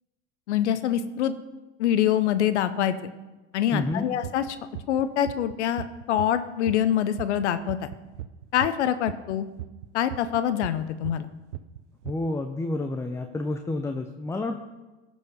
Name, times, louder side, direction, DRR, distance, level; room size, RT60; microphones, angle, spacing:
voice 1, 0.5-1.3 1.8-3.1 3.5-4.4 4.9-7.8 8.5-9.5 9.9-11.3, left 10 dB, 85° left, 12 dB, 0.7 m, -25 dB
voice 2, 3.7-4.0 12.0-14.6, left 2 dB, 10° left, 6 dB, 0.6 m, -29 dB
sound 1, 3.9-6.4 6.7-8.7 9.1-11.3 11.5-12.2, right 13 dB, 90° right, 0.6 m, -37 dB
14.0 x 4.7 x 5.5 m, 1.1 s
hypercardioid pair, 100°, 34 cm